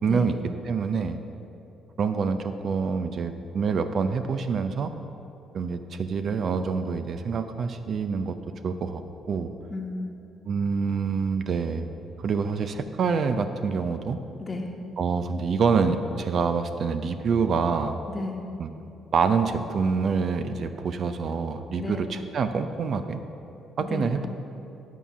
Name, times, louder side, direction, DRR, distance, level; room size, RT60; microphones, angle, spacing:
voice 1, 0.0-0.3 0.7-1.2 2.0-4.9 5.5-8.4 8.6-9.0 9.3-9.5 10.5-11.9 12.2-14.2 15.0-18.0 18.6-18.7 19.1-23.2 23.8-24.3, right 5 dB, 55° right, 9 dB, 0.5 m, -26 dB
voice 2, 9.7-10.2 14.4-14.7 18.1-18.5 21.8-22.1 23.1-23.3 23.9-24.2, left 2 dB, 25° left, 2 dB, 1.2 m, -33 dB
10.5 x 5.6 x 5.9 m, 2.8 s
cardioid pair, 100°, 0 cm